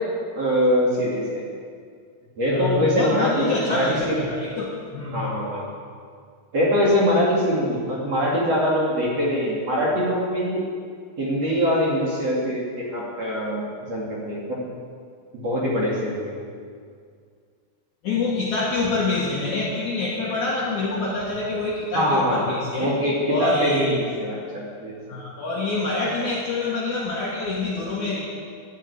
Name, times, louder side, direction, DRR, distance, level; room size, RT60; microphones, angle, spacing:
voice 1, 0.3-1.4 2.4-4.2 5.1-5.7 6.5-10.6 11.2-13.6 13.9-14.6 15.3-16.4 21.9-22.5 22.8-25.0, equal, 40° right, -6 dB, 2.9 m, -23 dB
voice 2, 2.5-5.3 18.0-23.0 23.3-24.1 25.1-28.3, left 3 dB, 60° left, -4 dB, 2.1 m, -26 dB
12.5 x 8.3 x 9.8 m, 2.1 s
omnidirectional pair, 5.4 m